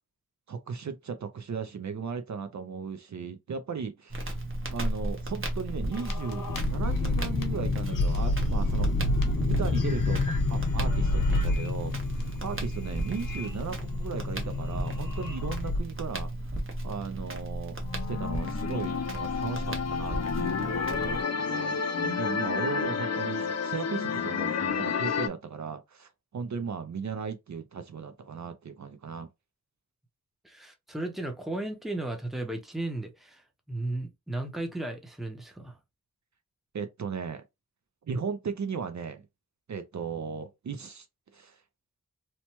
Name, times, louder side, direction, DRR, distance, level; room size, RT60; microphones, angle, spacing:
voice 1, 0.5-4.3 4.7-8.9 9.4-16.6 16.8-17.8 18.1-29.3 36.7-37.4 38.0-39.3 39.7-41.1 41.3-41.6, right 6 dB, 55° right, 0.5 m, -36 dB
Crackle, 4.1-21.2, right 1 dB, 35° right, 0.9 m, -35 dB
sound 1, 5.9-15.8, left 2 dB, 70° left, 0.9 m, -29 dB
sound 2, 17.8-25.3, left 6 dB, 50° left, 0.5 m, -30 dB
voice 2, 30.4-35.8, right 2 dB, ahead, 0.6 m, -35 dB
2.9 x 2.2 x 2.9 m
wide cardioid pair, 90°, 34 cm